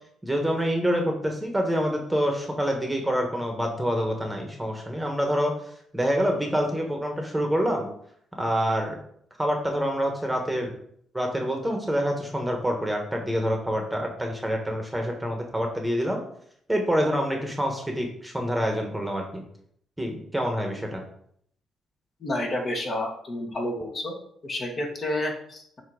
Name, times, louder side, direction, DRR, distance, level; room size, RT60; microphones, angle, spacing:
voice 1, 0.2-5.5 5.9-7.9 8.4-9.0 9.4-10.8 11.1-16.2 16.7-19.4 20.0-21.0, equal, 5° right, 2 dB, 1.2 m, -26 dB
voice 2, 22.2-24.2 24.4-25.8, left 1 dB, 45° left, 1 dB, 1.5 m, -30 dB
7.3 x 2.9 x 4.9 m, 0.67 s
cardioid pair, 90°, 0 cm